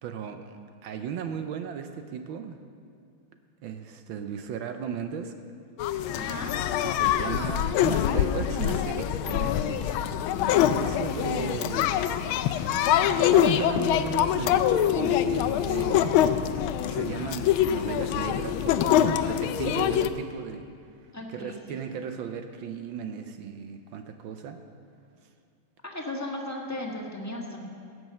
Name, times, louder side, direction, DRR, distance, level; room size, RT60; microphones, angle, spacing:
voice 1, 0.0-2.6 3.6-5.3 6.8-10.0 10.7-11.9 12.9-14.6 14.9-16.5 16.8-20.7 21.3-24.6, right 7 dB, 70° right, 7 dB, 1.4 m, -36 dB
sound 1, 5.8-20.1, left 10 dB, 75° left, 1.3 m, -24 dB
voice 2, 6.1-6.6 21.1-21.6 25.8-27.7, left 1 dB, 10° left, -1 dB, 1.2 m, -35 dB
16.5 x 6.4 x 7.6 m, 2.4 s
omnidirectional pair, 2.4 m